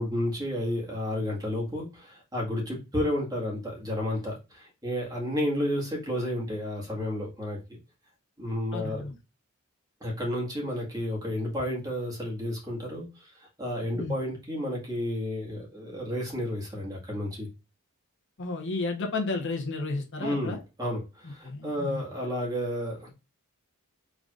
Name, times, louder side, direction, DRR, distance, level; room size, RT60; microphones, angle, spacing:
voice 1, 0.0-7.6 8.4-9.0 10.0-17.5 20.2-23.1, left 1 dB, 20° right, -3 dB, 1.9 m, -31 dB
voice 2, 8.7-9.2 14.0-14.2 18.4-20.6 21.4-22.0, left 3 dB, 55° left, 1 dB, 1.1 m, -32 dB
4.9 x 3.9 x 2.5 m, 0.28 s
head